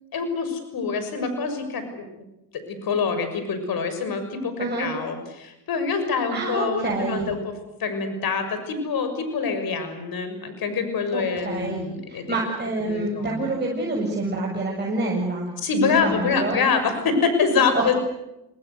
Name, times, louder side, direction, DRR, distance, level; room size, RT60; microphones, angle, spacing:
voice 1, 0.1-2.1 2.5-7.5 7.8-12.3 12.9-13.5 15.6-17.9, left 5 dB, 55° left, 9 dB, 6.5 m, -25 dB
voice 2, 6.3-7.3 11.1-15.5 15.8-16.6 17.7-17.9, right 2 dB, 25° right, -2 dB, 7.8 m, -27 dB
28.5 x 20.5 x 8.2 m, 0.90 s
supercardioid pair, 70°, 42 cm